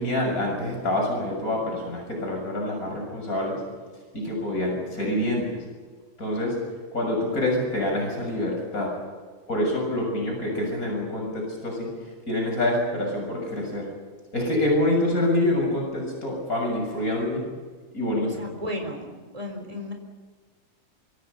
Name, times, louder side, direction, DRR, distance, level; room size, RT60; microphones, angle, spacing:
voice 1, 0.0-3.6 4.1-5.6 6.2-6.6 6.9-8.9 9.5-11.9 12.3-13.9 14.3-17.4 17.9-18.3, left 1 dB, 85° left, 0 dB, 7.3 m, -26 dB
voice 2, 18.2-19.9, left 1 dB, 25° right, 3 dB, 4.0 m, -34 dB
25.5 x 25.5 x 5.5 m, 1.5 s
omnidirectional pair, 1.5 m